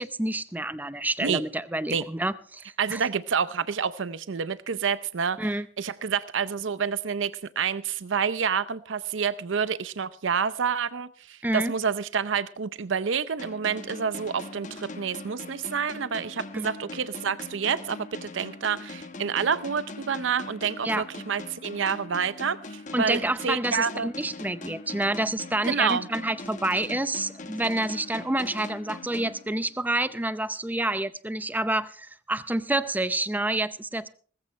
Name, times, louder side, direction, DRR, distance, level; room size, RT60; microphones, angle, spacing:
voice 1, 0.0-3.0 5.4-5.7 11.4-11.7 16.5-16.7 20.8-21.0 22.9-34.1, right 1 dB, 10° right, 14 dB, 0.6 m, -28 dB
voice 2, 2.8-24.1 25.7-26.1, right 6 dB, 75° right, 15 dB, 0.6 m, -28 dB
sound 1, 13.4-30.0, left 2 dB, 40° left, 1.2 m, -41 dB
19.0 x 14.5 x 3.2 m, 0.43 s
head